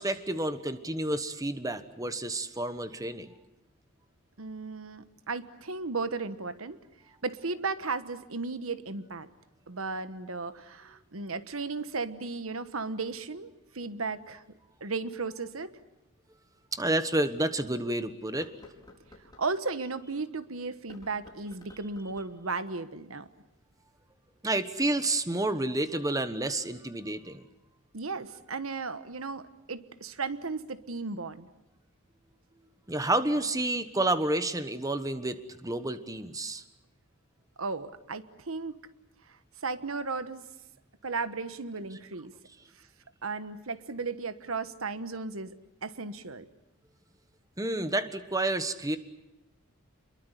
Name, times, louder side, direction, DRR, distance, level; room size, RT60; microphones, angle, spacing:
voice 1, 0.0-3.3 16.7-18.8 24.4-27.4 32.9-36.6 47.6-49.0, right 2 dB, 15° right, 11 dB, 1.3 m, -30 dB
voice 2, 4.4-6.8 7.2-9.3 9.7-14.4 14.8-15.7 19.4-23.3 27.9-31.5 37.6-38.8 39.6-40.4 41.0-42.3 43.2-45.5 45.8-46.5, right 4 dB, 90° right, 12 dB, 1.3 m, -35 dB
sound 1, 16.3-16.4 17.0-17.1 18.2-19.5 20.7-22.4, left 1 dB, 20° left, 4.9 m, -54 dB
28.0 x 22.5 x 8.2 m, 0.93 s
head